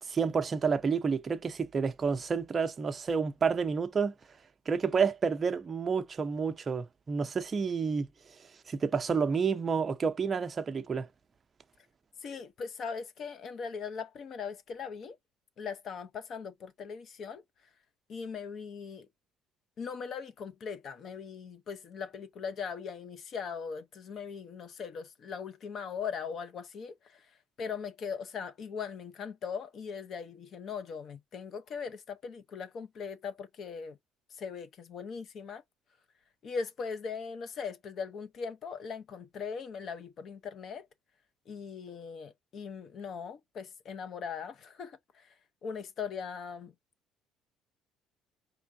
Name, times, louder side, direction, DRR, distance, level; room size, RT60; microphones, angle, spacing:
voice 1, 0.1-4.1 4.7-8.1 8.7-11.1, right 5 dB, 25° right, 0.6 m, -29 dB
voice 2, 12.2-15.2 15.6-17.4 18.1-19.1 19.8-27.2 27.6-34.0 34.4-35.6 36.4-40.9 41.5-45.3 45.6-46.7, left 6 dB, 45° left, 0.8 m, -40 dB
4.3 x 3.6 x 2.6 m
cardioid pair, 130°, 0 cm